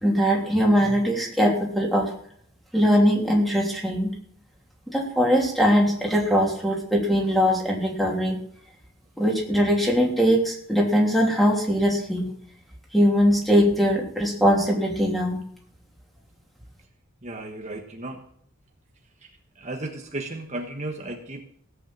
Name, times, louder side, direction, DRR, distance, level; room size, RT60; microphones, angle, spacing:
voice 1, 0.0-2.1 2.7-4.1 4.9-8.4 9.2-12.3 12.9-15.4, equal, ahead, -1 dB, 3.2 m, -21 dB
voice 2, 17.2-18.2 19.6-21.4, right 2 dB, 35° right, 2 dB, 1.3 m, -34 dB
17.0 x 8.5 x 7.4 m, 0.64 s
head